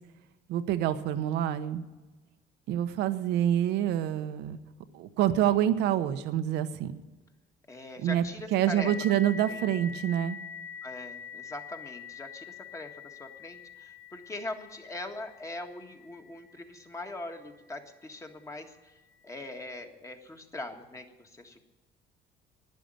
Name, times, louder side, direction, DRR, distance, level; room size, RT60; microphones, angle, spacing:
voice 1, 0.5-1.8 2.7-4.6 4.9-6.9 8.0-8.2 8.5-10.4, right 11 dB, 90° right, 10 dB, 1.0 m, -27 dB
voice 2, 7.7-8.9 9.5-9.6 10.8-19.0 19.2-21.6, left 2 dB, 20° left, 4 dB, 1.7 m, -41 dB
sound 1, 8.8-18.0, left 6 dB, 85° left, 2.4 m, -45 dB
12.0 x 10.0 x 9.2 m, 1.2 s
cardioid pair, 110°, 17 cm